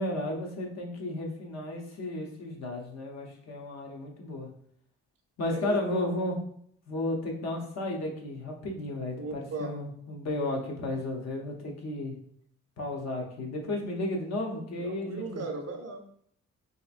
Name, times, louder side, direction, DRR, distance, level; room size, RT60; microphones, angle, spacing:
voice 1, 0.0-4.5 5.4-6.4 6.9-12.1 12.8-15.4, left 1 dB, 60° left, 1 dB, 0.8 m, -33 dB
voice 2, 5.5-6.1 9.2-9.8 14.8-16.1, right 2 dB, 55° right, 4 dB, 0.6 m, -37 dB
3.3 x 2.9 x 2.4 m, 0.65 s
cardioid pair, 115°, 30 cm